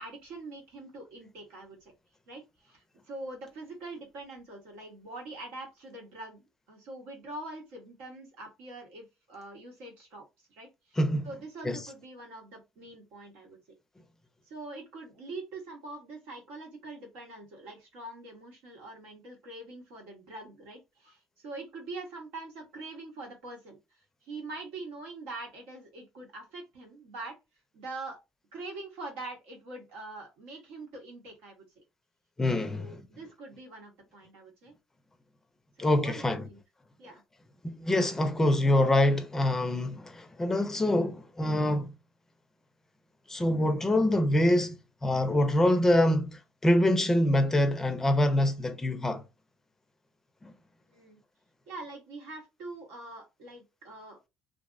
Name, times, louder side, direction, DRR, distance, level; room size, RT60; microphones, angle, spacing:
voice 1, 0.0-1.9 2.3-10.2 10.5-11.0 11.2-13.6 14.5-27.3 27.7-28.2 28.5-31.8 32.8-34.7 35.8-36.6 37.0-37.2 50.9-51.2 51.7-54.3, right 2 dB, 85° right, 1.1 m, -44 dB
voice 2, 11.0-11.3 11.6-11.8 32.4-33.1 35.8-36.5 37.6-41.9 43.3-49.2 50.4-50.5, left 1 dB, 15° left, 0.4 m, -25 dB
2.5 x 2.0 x 2.4 m
supercardioid pair, 95°, 3 cm